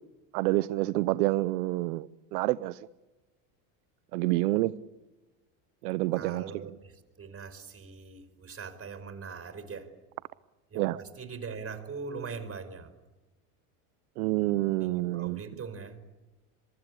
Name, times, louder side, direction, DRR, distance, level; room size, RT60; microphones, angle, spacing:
voice 1, 0.3-2.8 4.1-4.7 5.8-6.7 10.7-11.0 14.2-15.4, right 18 dB, 85° right, 0.8 m, -28 dB
voice 2, 6.1-9.9 10.7-12.9 14.8-16.0, right 5 dB, 30° right, 5.0 m, -41 dB
26.0 x 24.0 x 8.5 m
supercardioid pair, 100°, 44 cm